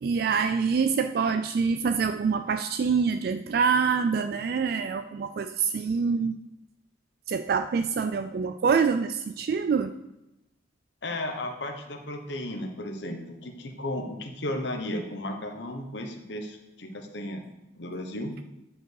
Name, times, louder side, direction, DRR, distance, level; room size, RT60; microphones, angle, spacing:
voice 1, 0.0-6.4 7.3-9.9, right 5 dB, 55° right, 9 dB, 0.3 m, -25 dB
voice 2, 11.0-17.4 17.8-18.3, left 1 dB, 70° left, 4 dB, 1.1 m, -34 dB
10.0 x 5.2 x 4.7 m, 0.90 s
head